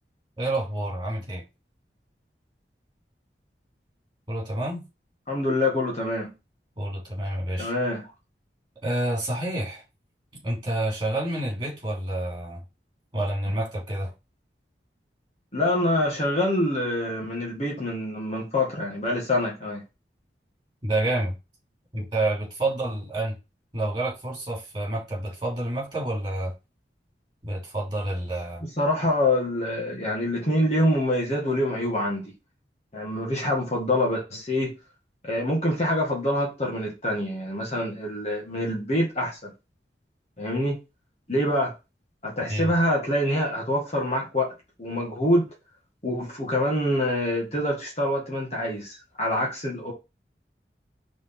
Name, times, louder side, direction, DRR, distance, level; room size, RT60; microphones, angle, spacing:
voice 1, 0.4-1.4 4.3-4.8 6.8-7.7 8.8-9.8 10.4-12.6 13.1-14.1 20.8-21.3 21.9-23.4 23.7-26.5 27.4-28.6 42.5-42.7, right 1 dB, 25° right, 3.0 m, -28 dB
voice 2, 5.3-6.3 7.6-8.0 15.5-19.8 28.8-32.3 32.9-34.8 35.2-39.5 40.4-40.8 41.3-41.7 42.2-44.5 44.8-45.5 46.0-49.9, left 1 dB, 35° left, 2.0 m, -25 dB
4.8 x 4.0 x 5.5 m
head